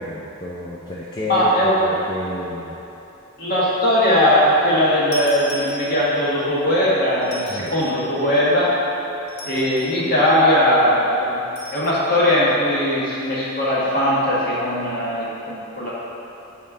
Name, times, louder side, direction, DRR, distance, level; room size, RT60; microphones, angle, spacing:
voice 1, 0.0-2.8 7.5-7.7, left 2 dB, 20° left, -6 dB, 0.4 m, -30 dB
voice 2, 1.3-1.9 3.4-8.7 9.4-11.4 11.7-15.9, equal, 45° left, -8 dB, 1.4 m, -19 dB
sound 1, 5.1-6.3 7.2-8.1 9.3-10.0 11.6-12.0, equal, 90° left, 1.5 m, -36 dB
5.5 x 4.3 x 4.8 m, 3.0 s
head